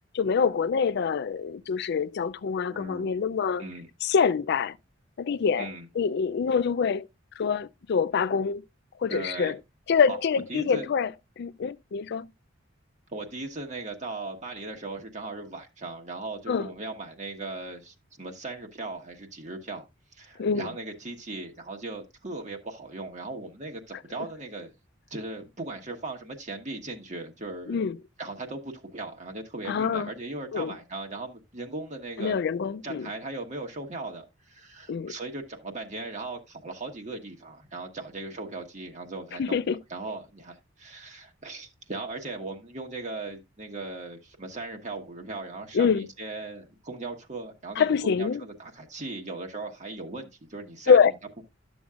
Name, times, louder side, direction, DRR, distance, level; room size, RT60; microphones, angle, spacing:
voice 1, 0.1-3.6 4.0-4.8 5.2-5.7 6.0-7.1 7.4-8.6 9.0-9.6 9.9-11.1 11.4-12.3 16.5-16.7 20.4-20.7 27.7-28.0 29.7-30.1 30.5-30.8 32.2-33.1 34.9-35.1 39.4-39.8 45.7-46.1 47.8-48.4 50.9-51.1, left 6 dB, 60° left, 0.4 m, -25 dB
voice 2, 2.7-3.1 3.6-3.9 5.6-5.9 9.1-9.5 10.1-10.2 10.5-10.9 13.1-19.8 20.1-24.7 25.1-27.8 28.2-32.4 32.8-39.6 39.9-51.0, right 2 dB, 40° right, 1.3 m, -38 dB
11.5 x 7.1 x 2.4 m
head